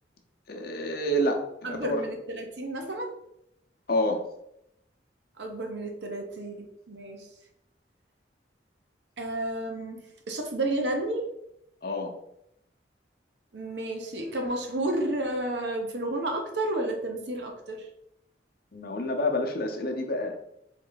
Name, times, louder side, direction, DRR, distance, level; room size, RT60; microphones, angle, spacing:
voice 1, 0.5-2.1 3.9-4.2 11.8-12.1 18.7-20.4, left 1 dB, 55° left, 3 dB, 0.7 m, -28 dB
voice 2, 1.6-3.1 5.4-7.3 9.2-11.3 13.5-17.9, right 1 dB, 70° right, 3 dB, 0.9 m, -31 dB
3.7 x 3.2 x 3.9 m, 0.79 s
head